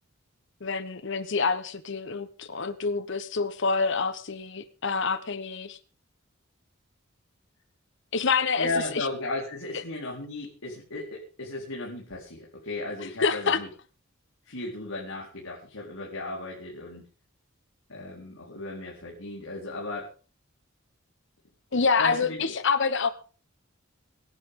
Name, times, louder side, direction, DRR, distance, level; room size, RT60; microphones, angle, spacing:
voice 1, 0.6-5.8 8.1-8.7 8.9-9.1 13.2-13.6 21.7-23.1, left 5 dB, 60° left, 12 dB, 1.2 m, -27 dB
voice 2, 8.6-13.7 14.4-17.0 17.9-20.1 22.0-22.5, left 2 dB, 85° left, -3 dB, 4.5 m, -35 dB
24.0 x 11.0 x 3.9 m, 0.37 s
head